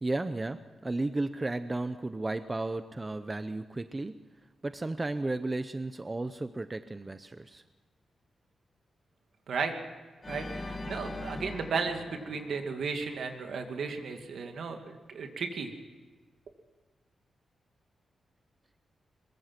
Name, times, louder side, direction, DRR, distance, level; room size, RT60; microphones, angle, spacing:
voice 1, 0.0-4.1 4.6-7.6, right 2 dB, 20° right, 11 dB, 0.6 m, -34 dB
Organ, 10.2-13.3, left 2 dB, 25° left, 2.4 m, -41 dB
voice 2, 10.3-15.7, right 5 dB, 70° right, 5 dB, 2.4 m, -34 dB
22.5 x 21.5 x 6.0 m, 1.3 s
wide cardioid pair, 145°, 0 cm